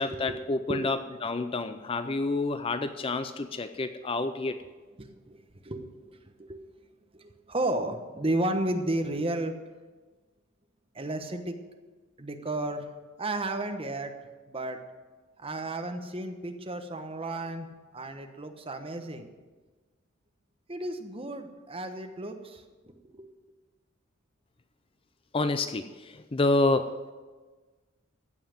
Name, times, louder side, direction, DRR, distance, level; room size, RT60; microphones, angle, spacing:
voice 1, 0.0-4.6 25.3-26.9, left 2 dB, 25° left, 10 dB, 0.5 m, -28 dB
voice 2, 5.0-5.4 5.6-6.6 7.1-9.5 10.9-11.6 12.2-12.9 13.2-14.1 14.5-14.8 15.4-17.7 17.9-19.3 20.7-23.3, right 1 dB, 25° right, 6 dB, 1.1 m, -33 dB
15.5 x 5.8 x 9.2 m, 1.3 s
head